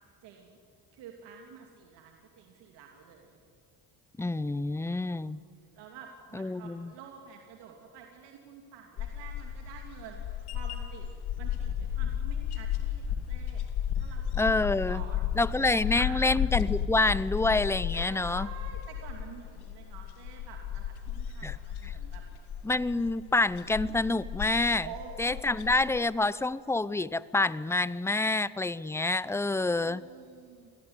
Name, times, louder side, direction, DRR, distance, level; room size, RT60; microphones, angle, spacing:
voice 1, 0.2-0.6 0.9-3.4 4.8-5.4 5.7-11.1 11.4-13.6 14.0-16.3 17.9-22.2 24.8-25.7 29.8-30.7, right 7 dB, 85° right, 2 dB, 2.9 m, -49 dB
voice 2, 4.2-5.4 6.3-6.9 14.4-15.0 15.4-18.5 21.4-21.6 21.8-21.9 22.6-24.9 25.2-30.1, left 2 dB, 5° left, 18 dB, 0.6 m, -27 dB
sound 1, 9.0-26.0, left 9 dB, 75° left, 2.5 m, -34 dB
27.5 x 18.5 x 9.7 m, 2.3 s
cardioid pair, 110°, 40 cm